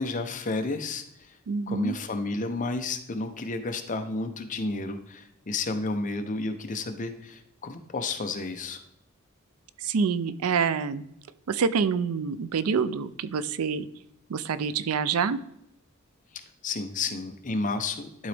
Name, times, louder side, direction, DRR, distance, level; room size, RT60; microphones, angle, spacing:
voice 1, 0.0-1.4 1.7-8.8 16.3-18.3, left 3 dB, 35° left, 7 dB, 0.7 m, -31 dB
voice 2, 1.5-1.9 9.8-11.0 11.5-13.9 14.3-15.4, right 6 dB, 85° right, 15 dB, 0.4 m, -26 dB
11.5 x 3.9 x 3.4 m, 0.78 s
head